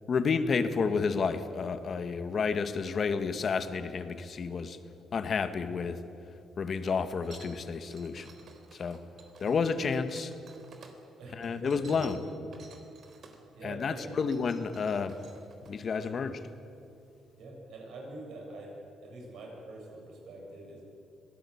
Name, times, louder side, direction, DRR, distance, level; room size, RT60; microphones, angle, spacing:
voice 1, 0.1-4.8 5.1-6.0 6.6-8.3 8.7-9.0 9.4-10.3 11.3-12.2 13.6-15.2 15.6-16.4, left 5 dB, 50° left, 10 dB, 1.7 m, -30 dB
sound 1, 7.2-10.9 11.4-13.4 13.9-15.7, right 5 dB, 55° right, 3.7 m, -54 dB
voice 2, 11.2-12.3 13.5-14.2 17.3-18.7 19.0-20.8, right 2 dB, 75° right, -1 dB, 7.7 m, -45 dB
25.5 x 18.5 x 8.7 m, 2.7 s
cardioid pair, 90°, 0 cm